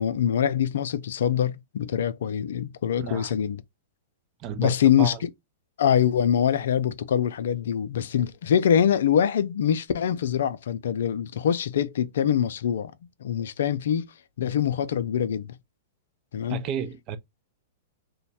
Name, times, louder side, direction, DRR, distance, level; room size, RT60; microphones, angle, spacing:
voice 1, 0.0-3.6 4.6-5.3 5.8-12.9 13.2-14.1 14.4-15.6 16.3-16.6, left 9 dB, 70° left, 0.4 m, -24 dB
voice 2, 3.0-3.3 4.4-5.2 16.5-17.2, right 6 dB, 40° right, 0.5 m, -32 dB
3.0 x 2.1 x 4.1 m
hypercardioid pair, 110°, 0 cm